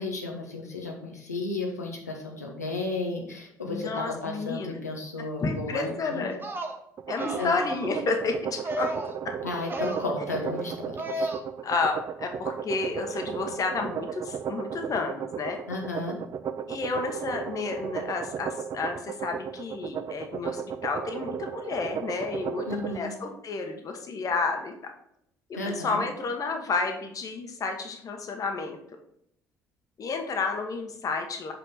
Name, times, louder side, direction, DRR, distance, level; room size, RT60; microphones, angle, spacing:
voice 1, 0.0-6.3 7.4-7.6 9.4-11.3 15.7-16.2 22.6-23.1 25.5-26.0, left 2 dB, 90° left, 0 dB, 1.0 m, -33 dB
voice 2, 3.6-4.8 5.4-6.4 7.1-8.9 11.6-15.6 16.7-24.7 25.5-28.8 30.0-31.5, left 4 dB, 45° left, 4 dB, 1.3 m, -31 dB
sound 1, 6.3-6.8 7.2-7.9 8.6-9.2 9.6-10.1 11.0-11.4, right 1 dB, 25° right, 1.1 m, -33 dB
sound 2, 7.0-23.0, right 8 dB, 45° right, 0.5 m, -35 dB
6.0 x 5.6 x 4.2 m, 0.73 s
figure-of-eight pair, 50°, 8 cm